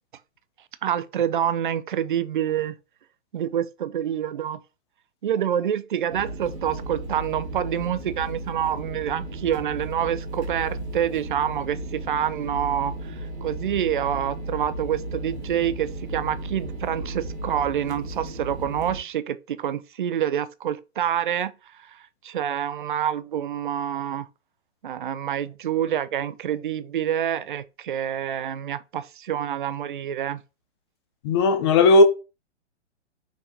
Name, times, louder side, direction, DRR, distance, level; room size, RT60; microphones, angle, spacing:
voice 1, 0.8-2.8 3.3-4.6 5.2-21.5 22.2-24.3 24.8-30.4, right 9 dB, 45° right, 0.4 m, -27 dB
sound 1, 6.1-19.0, right 1 dB, 70° right, 1.4 m, -35 dB
voice 2, 31.2-32.0, left 2 dB, 25° left, 0.6 m, -16 dB
5.7 x 3.4 x 2.7 m
figure-of-eight pair, 120°, 35 cm